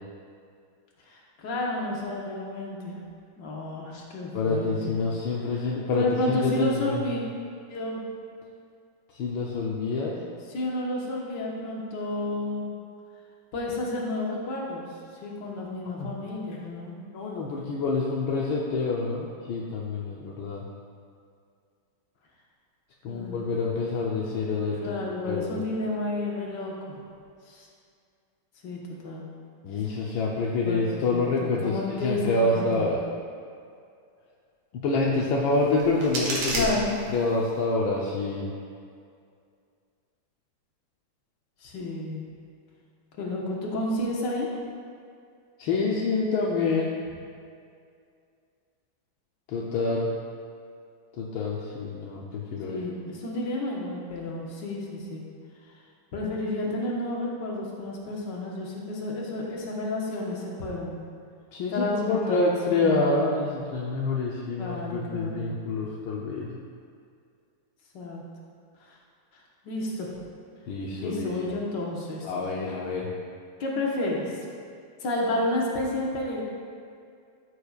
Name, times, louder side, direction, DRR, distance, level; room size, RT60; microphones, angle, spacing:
voice 1, 1.1-3.0 3.4-4.9 5.9-7.2 7.7-8.0 10.5-12.7 13.5-14.9 15.2-17.0 23.1-23.6 24.8-27.0 27.5-27.7 28.6-29.3 30.6-30.8 31.1-32.9 36.5-36.9 41.6-42.2 43.2-44.5 52.7-55.2 56.1-61.0 61.7-63.3 64.6-65.5 67.9-68.2 68.8-69.0 69.6-70.1 70.9-72.3 73.6-74.4 75.0-76.4, left 2 dB, 65° left, -3 dB, 1.9 m, -31 dB
voice 2, 4.3-7.0 9.1-10.2 16.0-16.1 17.1-20.6 23.0-25.0 25.2-25.6 29.6-33.0 34.7-36.7 37.1-38.5 45.6-46.9 49.5-50.1 51.2-52.9 61.5-66.6 70.7-71.6 72.2-73.1, left 3 dB, 80° left, -4 dB, 1.6 m, -27 dB
sound 1, 35.5-37.5, right 1 dB, 85° right, 2.3 m, -32 dB
13.0 x 6.7 x 2.4 m, 2.3 s
omnidirectional pair, 2.2 m